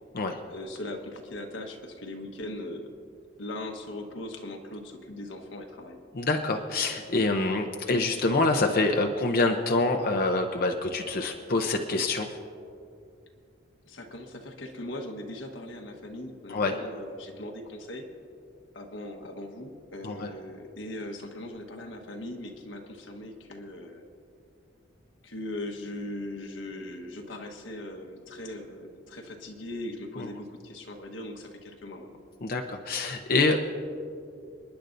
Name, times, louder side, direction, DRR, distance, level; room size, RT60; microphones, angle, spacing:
voice 1, 0.5-2.9 3.4-6.0 13.9-18.1 18.7-24.1 25.2-32.2, left 1 dB, 80° left, 3 dB, 1.3 m, -39 dB
voice 2, 6.2-12.3 16.5-16.7 20.0-20.3 30.2-30.3 32.4-33.6, left 3 dB, 50° left, 3 dB, 0.7 m, -26 dB
29.5 x 10.5 x 2.6 m, 2.5 s
head